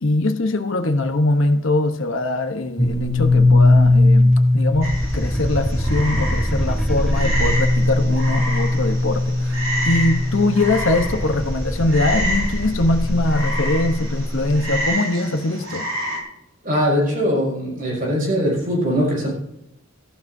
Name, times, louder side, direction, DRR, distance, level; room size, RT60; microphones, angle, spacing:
voice 1, 0.0-9.6 9.8-15.9, left 2 dB, 65° left, 6 dB, 1.0 m, -22 dB
sound 1, 2.8-14.7, left 2 dB, ahead, 0.9 m, -19 dB
Frog, 4.8-16.2, equal, 70° right, 5.3 m, -29 dB
voice 2, 16.6-19.3, equal, 40° right, -3 dB, 5.8 m, -21 dB
17.5 x 14.5 x 2.7 m, 0.83 s
head